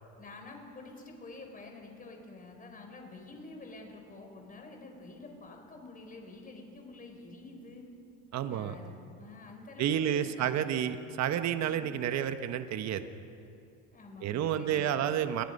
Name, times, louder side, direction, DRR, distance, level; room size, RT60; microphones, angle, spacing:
voice 1, 0.2-7.8 8.5-10.7 11.6-11.9 13.9-15.1, left 3 dB, 25° left, 3 dB, 4.6 m, -48 dB
voice 2, 8.3-8.7 9.8-13.1 14.2-15.4, right 10 dB, 50° right, 9 dB, 1.3 m, -30 dB
28.5 x 22.5 x 5.5 m, 2.6 s
cardioid pair, 120°, 34 cm